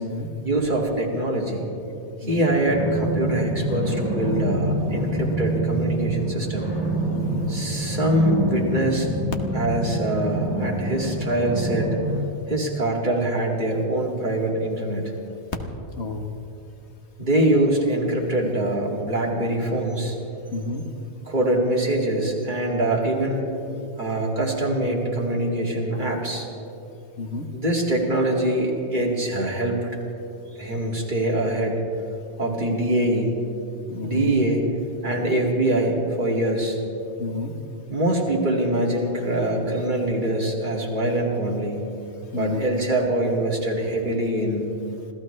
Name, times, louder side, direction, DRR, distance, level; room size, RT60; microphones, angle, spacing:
voice 1, 0.4-1.7 2.2-6.7 7.5-9.1 9.5-12.0 12.5-15.0 17.2-20.2 21.3-23.5 24.0-26.5 27.5-29.9 30.6-31.8 32.4-33.4 34.0-34.6 35.0-36.8 37.9-41.8 42.3-44.7, right 1 dB, 45° right, -2 dB, 2.5 m, -24 dB
sound 1, 2.6-12.2, right 1 dB, 10° right, 3.7 m, -26 dB
voice 2, 7.1-7.5 16.0-16.3 20.5-20.8 27.2-27.5 33.9-34.4 37.2-37.5 42.3-42.7, left 3 dB, 75° left, 4 dB, 1.6 m, -30 dB
26.0 x 15.5 x 3.3 m, 2.7 s
omnidirectional pair, 1.1 m